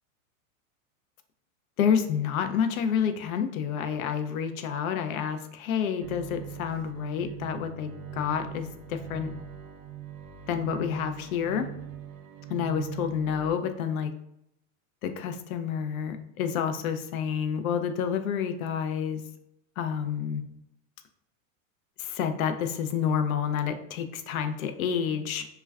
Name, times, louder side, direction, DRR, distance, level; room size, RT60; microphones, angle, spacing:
voice 1, 1.8-9.3 10.5-11.7 12.5-14.1 15.0-19.2 19.8-20.4 22.0-25.5, left 7 dB, 85° left, 8 dB, 0.5 m, -29 dB
Bowed string instrument, 6.0-13.5, right 9 dB, 85° right, 0.6 m, -41 dB
2.3 x 2.2 x 3.3 m, 0.78 s
supercardioid pair, 165°, 41 cm